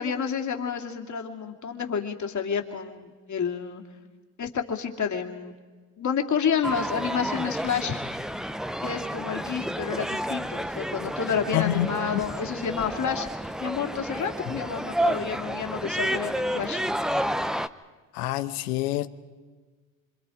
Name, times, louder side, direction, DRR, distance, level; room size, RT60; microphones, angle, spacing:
voice 1, 0.0-3.8 4.4-5.5 6.0-8.0 8.8-13.3 13.6-16.8, left 7 dB, 40° left, 2.8 m, -29 dB
sound 1, 6.6-17.7, equal, ahead, 0.7 m, -30 dB
voice 2, 11.5-11.9 18.1-19.1, left 14 dB, 90° left, 1.0 m, -26 dB
27.0 x 26.0 x 5.0 m
supercardioid pair, 80°, 44 cm